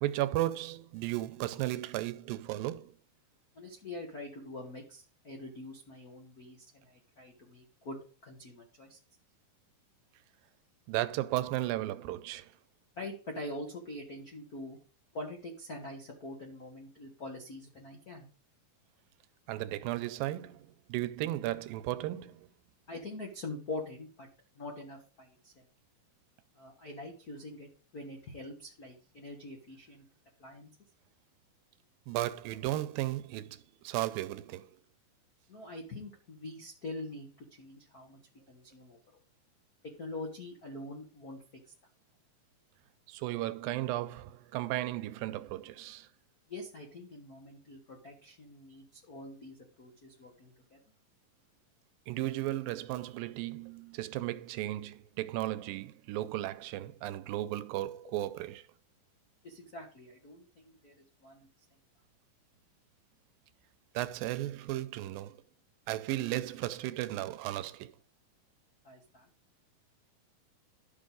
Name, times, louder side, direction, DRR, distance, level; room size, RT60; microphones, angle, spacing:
voice 1, 0.0-2.9 10.9-12.5 19.5-22.5 32.1-34.8 43.1-46.1 52.1-58.7 63.9-65.4 65.9-68.0, right 15 dB, 90° right, 2.4 m, -35 dB
voice 2, 3.5-9.0 13.0-14.8 15.1-18.3 22.9-24.3 24.5-25.6 26.5-27.7 27.9-30.0 30.4-30.7 35.5-38.2 38.5-39.2 39.8-41.4 46.5-50.8 59.4-61.5 68.8-69.3, left 2 dB, 70° left, 0.8 m, -44 dB
11.5 x 6.3 x 3.9 m
omnidirectional pair, 4.0 m